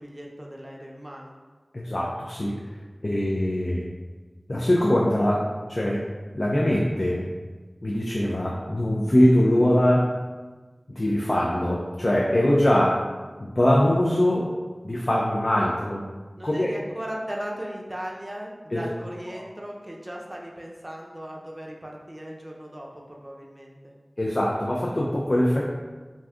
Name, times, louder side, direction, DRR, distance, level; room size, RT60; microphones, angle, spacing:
voice 1, 0.0-1.3 16.4-23.8, equal, 25° right, -1 dB, 0.5 m, -37 dB
voice 2, 1.7-2.5 3.0-3.8 4.5-5.4 5.7-6.0 6.3-7.3 7.8-10.1 11.0-13.0 13.4-14.5 14.8-16.0 16.4-16.7 18.7-18.8 24.2-25.7, left 1 dB, 55° left, -4 dB, 0.4 m, -22 dB
2.6 x 2.3 x 3.4 m, 1.3 s
wide cardioid pair, 40°, 0 cm